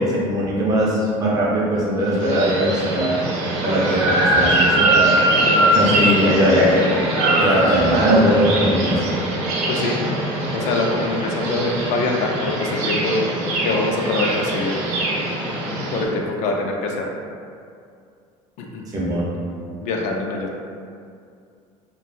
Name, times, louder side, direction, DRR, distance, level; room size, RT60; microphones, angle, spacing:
voice 1, 0.0-3.2 3.6-5.0 5.7-6.9 7.4-9.0 18.9-19.3, equal, 30° right, -6 dB, 0.6 m, -19 dB
sound 1, 2.1-16.0, right 1 dB, 80° right, 0.6 m, -22 dB
voice 2, 9.7-10.0 10.5-13.2 13.6-14.8 15.9-17.0 18.6-18.8 19.8-20.6, left 3 dB, 65° left, 0 dB, 0.4 m, -24 dB
2.3 x 2.2 x 3.0 m, 2.3 s
cardioid pair, 145°, 13 cm